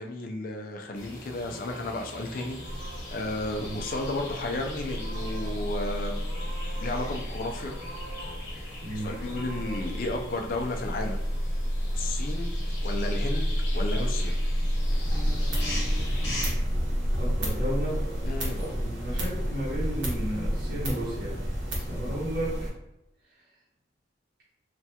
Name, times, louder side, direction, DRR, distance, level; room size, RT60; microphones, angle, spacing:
voice 1, 0.0-2.6 3.1-6.2 6.8-7.7 9.0-11.2 11.9-12.5 12.8-14.3 18.2-18.7, left 2 dB, 45° left, 3 dB, 0.4 m, -33 dB
sound 1, 0.9-16.5, left 1 dB, 75° left, 1.0 m, -41 dB
sound 2, 2.7-20.8, equal, 15° right, 0.5 m, -31 dB
voice 2, 8.8-9.1 17.1-18.0 18.6-21.4 21.7-22.7, right 1 dB, 50° right, -8 dB, 0.8 m, -33 dB
sound 3, 14.7-22.7, equal, 80° right, 1.0 m, -32 dB
3.2 x 2.2 x 2.8 m, 0.89 s
head